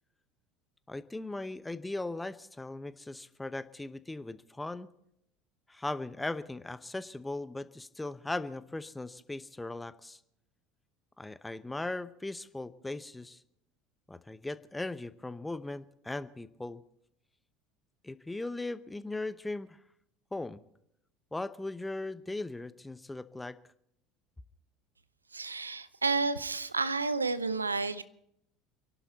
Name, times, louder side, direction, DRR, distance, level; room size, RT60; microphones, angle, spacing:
voice 1, 0.9-4.9 5.7-10.2 11.2-13.4 14.1-16.8 18.0-19.8 20.3-20.6 21.3-23.6, left 2 dB, 10° left, 0.8 m, -38 dB
voice 2, 25.3-28.0, right 4 dB, 90° right, 0.6 m, -31 dB
29.5 x 11.5 x 4.1 m
figure-of-eight pair, 70°, 0 cm